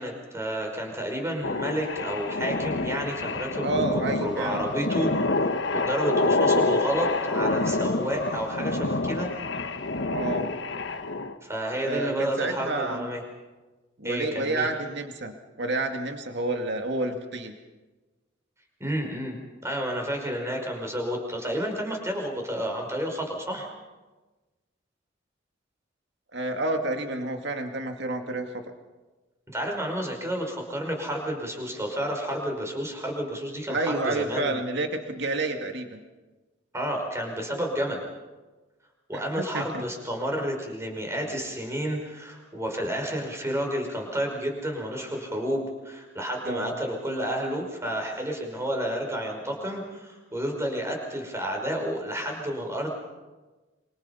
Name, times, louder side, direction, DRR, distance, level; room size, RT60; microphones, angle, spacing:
voice 1, 0.0-9.3 11.4-13.2 14.0-14.7 18.8-19.4 19.6-23.7 29.5-34.6 36.7-38.0 39.1-52.9, equal, 15° right, 2 dB, 5.2 m, -30 dB
sound 1, 1.4-11.4, left 3 dB, 65° left, 1.4 m, -27 dB
voice 2, 3.6-4.6 10.1-10.5 11.8-13.1 14.0-17.5 26.3-28.5 33.7-36.0 39.1-39.8 46.4-46.8, right 2 dB, 65° right, 5 dB, 2.3 m, -29 dB
27.0 x 26.5 x 5.7 m, 1.2 s
head